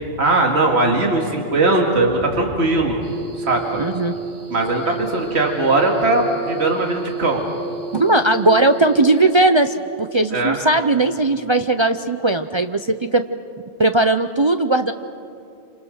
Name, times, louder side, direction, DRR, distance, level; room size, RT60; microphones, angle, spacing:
voice 1, 0.2-3.0 3.4-3.8 4.5-7.4 10.3-10.6, right 2 dB, 65° right, 1 dB, 2.4 m, -19 dB
sound 1, 3.0-9.3, right 6 dB, 85° right, 1.7 m, -31 dB
voice 2, 3.8-4.1 7.9-12.8 13.1-13.2 13.8-14.9, right 2 dB, 30° right, 8 dB, 0.5 m, -17 dB
28.0 x 27.0 x 6.5 m, 2.6 s
omnidirectional pair, 1.2 m